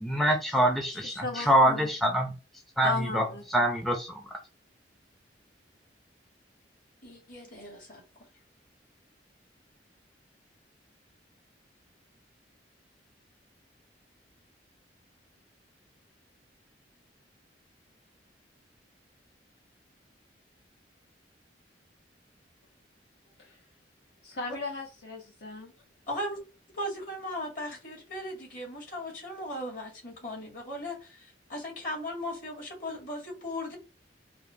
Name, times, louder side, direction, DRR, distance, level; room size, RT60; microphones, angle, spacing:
voice 1, 0.0-2.3 2.8-4.2, right 1 dB, ahead, 0.4 m, -25 dB
voice 2, 1.0-1.8 2.8-3.4 24.2-25.7, left 3 dB, 65° left, 0.8 m, -35 dB
voice 3, 7.0-8.3 26.1-26.4 26.7-33.8, left 1 dB, 50° left, 1.8 m, -37 dB
4.7 x 2.1 x 2.6 m
head